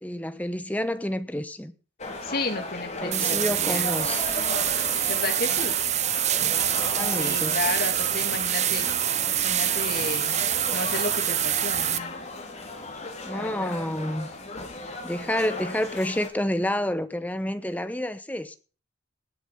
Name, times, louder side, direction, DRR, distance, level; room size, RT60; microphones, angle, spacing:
voice 1, 0.0-1.7 3.0-4.2 6.8-7.6 13.2-14.3 15.0-18.6, left 1 dB, 10° left, 1.0 m, -29 dB
sound 1, 2.0-16.3, left 2 dB, 40° left, 3.7 m, -36 dB
voice 2, 2.2-3.9 5.1-5.8 7.1-8.9 9.4-10.4 10.7-12.3 13.3-13.8, left 3 dB, 55° left, 2.3 m, -32 dB
sound 2, 3.1-12.0, right 11 dB, 40° right, 0.7 m, -25 dB
19.0 x 7.0 x 5.6 m
head